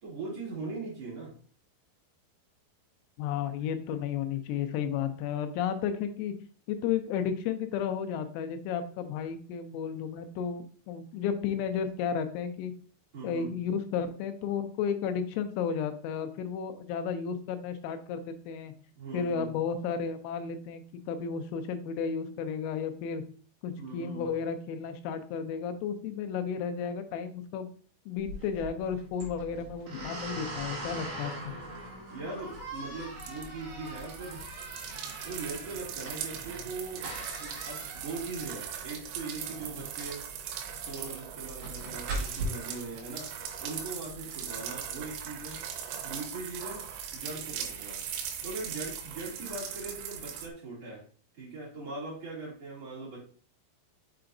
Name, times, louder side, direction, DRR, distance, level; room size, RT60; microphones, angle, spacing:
voice 1, 0.0-1.3 13.1-13.6 18.9-19.5 23.8-24.3 32.1-34.4 35.2-37.1 37.4-40.2 40.9-43.3 43.6-45.6 46.0-48.0 48.4-51.0 51.3-53.2, right 3 dB, 40° right, -6 dB, 2.9 m, -40 dB
voice 2, 3.2-6.3 6.7-12.7 13.2-18.7 19.1-23.2 23.6-27.7 28.1-31.5, left 7 dB, 90° left, 8 dB, 3.4 m, -33 dB
sound 1, 28.2-42.4, right 2 dB, 60° right, 2.0 m, -41 dB
sound 2, 32.4-50.5, right 8 dB, 85° right, 3.4 m, -40 dB
6.8 x 5.8 x 2.6 m, 0.43 s
omnidirectional pair, 5.8 m